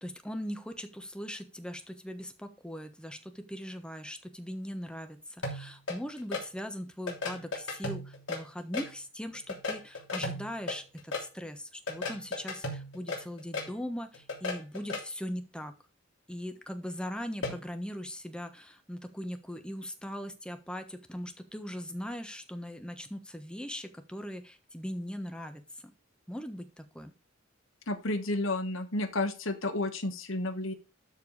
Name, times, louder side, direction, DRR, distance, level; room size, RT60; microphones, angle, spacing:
voice 1, 0.0-15.7 16.3-25.9 26.3-27.1, equal, 5° left, 7 dB, 1.2 m, -40 dB
sound 1, 5.4-6.4 7.1-8.9 9.3-11.2 11.9-13.7 14.1-15.0 17.4-17.6, left 2 dB, 65° left, 3.0 m, -35 dB
voice 2, 27.9-30.7, left 2 dB, 90° left, 7 dB, 1.4 m, -31 dB
12.5 x 4.5 x 4.9 m, 0.31 s
head